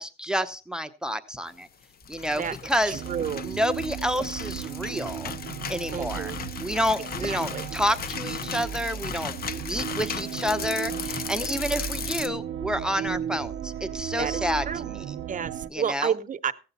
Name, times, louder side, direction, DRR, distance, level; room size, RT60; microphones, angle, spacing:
voice 1, 0.0-1.7 2.1-3.0 3.4-5.3 5.7-6.3 6.6-15.1 15.7-16.1, equal, 5° right, 11 dB, 0.7 m, -29 dB
sound 1, 1.8-12.3, left 7 dB, 50° left, 0.6 m, -37 dB
sound 2, 2.0-10.1, left 1 dB, 30° left, 2.6 m, -47 dB
voice 2, 2.9-3.4 5.9-6.4 7.2-7.7 14.2-14.9 15.3-16.5, right 7 dB, 40° right, 12 dB, 0.8 m, -30 dB
sound 3, 2.9-15.7, right 10 dB, 85° right, 0.7 m, -35 dB
15.5 x 7.9 x 4.1 m, 0.33 s
cardioid pair, 90°, 20 cm